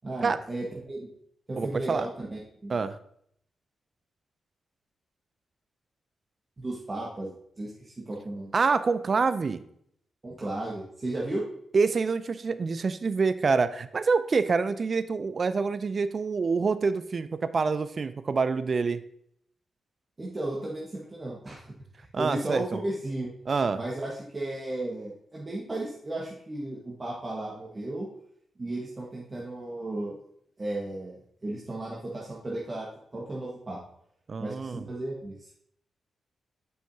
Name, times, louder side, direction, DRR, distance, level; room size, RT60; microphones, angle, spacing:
voice 1, 0.0-1.1 1.5-2.8 6.6-8.5 10.2-11.4 20.2-21.7 22.2-23.3 23.7-28.1 28.6-30.2 30.6-33.8 34.4-35.6, right 1 dB, 35° right, -4 dB, 1.4 m, -34 dB
voice 2, 1.6-2.1 2.7-3.0 8.5-9.6 11.7-19.0 22.1-22.8 23.5-23.8 34.3-34.9, right 4 dB, 55° right, 13 dB, 0.4 m, -26 dB
7.6 x 5.6 x 2.7 m, 0.69 s
supercardioid pair, 50°, 0 cm